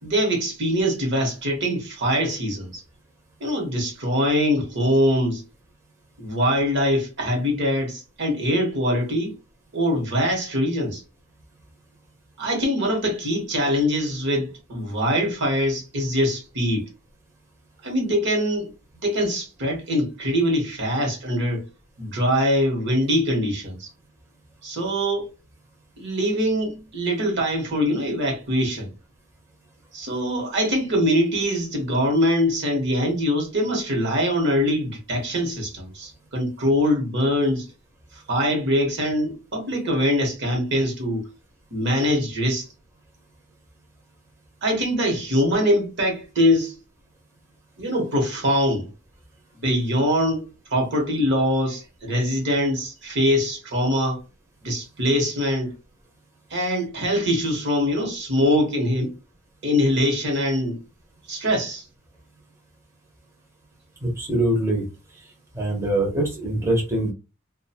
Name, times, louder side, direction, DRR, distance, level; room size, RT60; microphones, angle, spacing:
voice 1, 0.0-2.8 3.4-5.4 6.2-9.3 9.7-11.0 12.4-16.9 17.8-18.7 19.0-21.6 22.0-23.9 24.6-25.3 26.0-28.9 29.9-37.7 38.1-41.2 41.7-42.7 44.6-46.7 47.8-48.9 49.5-54.2 54.6-55.7 56.5-59.1 59.6-60.8 61.3-61.8, equal, 55° right, 1.0 m, -23 dB
voice 2, 64.0-64.9 65.5-67.1, right 1 dB, 15° right, 0.7 m, -23 dB
2.5 x 2.2 x 2.7 m
head